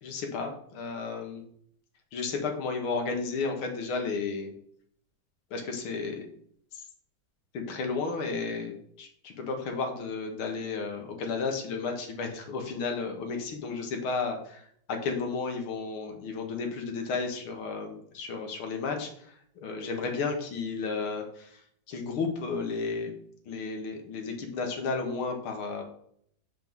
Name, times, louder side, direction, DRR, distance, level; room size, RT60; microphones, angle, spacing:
voice 1, 0.0-1.4 2.1-4.5 5.5-6.3 6.7-6.9 7.5-21.6 21.9-23.1 23.5-25.8, left 4 dB, 85° left, 3 dB, 2.0 m, -33 dB
5.9 x 5.8 x 3.6 m, 0.66 s
omnidirectional pair, 2.3 m